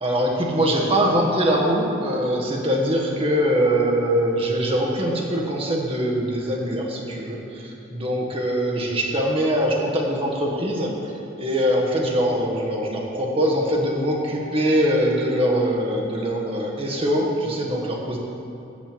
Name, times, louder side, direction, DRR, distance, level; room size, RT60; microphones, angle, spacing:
voice 1, 0.0-18.2, equal, 25° right, -1 dB, 1.2 m, -23 dB
7.6 x 7.4 x 7.6 m, 2.8 s
head